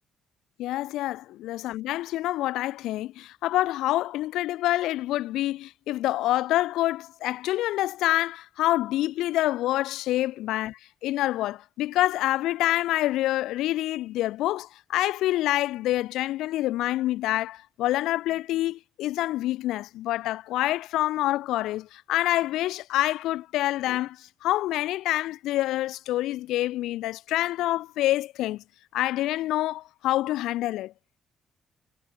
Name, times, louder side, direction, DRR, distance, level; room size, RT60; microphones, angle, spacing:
voice 1, 0.6-28.6 28.9-30.9, left 15 dB, 90° left, 3.6 m, -27 dB
cardioid pair, 90°, 0 cm